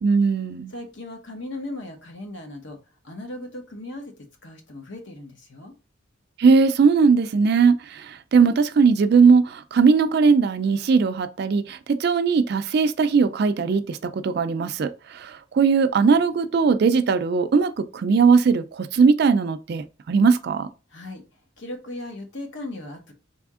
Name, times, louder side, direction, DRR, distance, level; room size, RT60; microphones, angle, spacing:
voice 1, 0.0-0.7 6.4-20.7, right 5 dB, 50° right, 0.3 m, -19 dB
voice 2, 0.7-2.8 3.0-5.7 20.9-21.2 21.6-23.1, left 1 dB, 65° left, 1.0 m, -37 dB
3.5 x 2.8 x 3.6 m
head